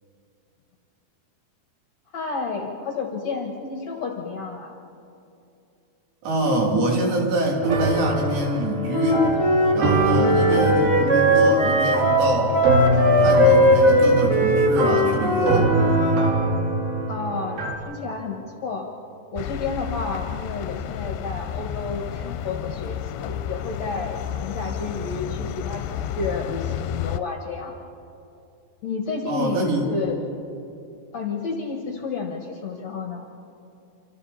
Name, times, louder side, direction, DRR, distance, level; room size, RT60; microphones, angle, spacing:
voice 1, 2.1-4.7 10.0-10.4 17.1-18.9 19.3-27.7 28.8-30.2 31.1-33.2, left 4 dB, 55° left, 1 dB, 2.1 m, -31 dB
voice 2, 6.2-9.3 9.7-12.6 13.2-15.7 29.3-29.9, right 1 dB, 80° right, -1 dB, 5.3 m, -25 dB
sound 1, 7.6-17.7, right 1 dB, 60° right, 3.9 m, -24 dB
Wind instrument woodwind instrument, 8.9-16.3, equal, 20° right, 0.7 m, -19 dB
sound 2, 19.4-27.2, left 10 dB, 80° left, 2.6 m, -31 dB
28.0 x 26.0 x 4.2 m, 2.6 s
omnidirectional pair, 4.9 m